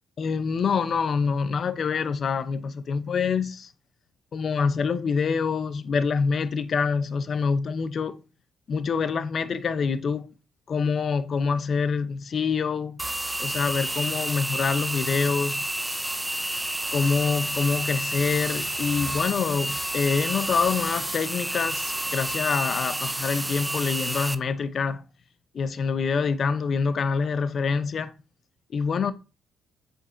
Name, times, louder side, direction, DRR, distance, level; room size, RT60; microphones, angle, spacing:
voice 1, 0.2-3.7 4.3-8.2 8.7-10.3 10.7-13.0 13.4-15.7 16.9-25.0 25.5-28.1 28.7-29.1, left 5 dB, 50° left, 0.6 m, -26 dB
sound 1, 13.0-24.4, right 1 dB, 10° right, 0.4 m, -30 dB
8.2 x 5.3 x 2.6 m
cardioid pair, 90°, 0 cm